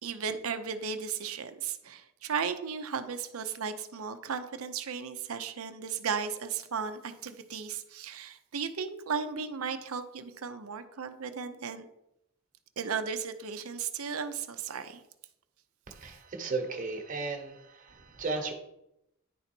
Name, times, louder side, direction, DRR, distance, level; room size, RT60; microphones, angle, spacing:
voice 1, 0.0-11.8 12.8-15.0 16.1-16.2, right 6 dB, 80° right, 9 dB, 0.7 m, -35 dB
voice 2, 15.9-18.5, right 3 dB, 40° right, 2 dB, 1.1 m, -35 dB
10.0 x 4.0 x 4.4 m, 0.83 s
head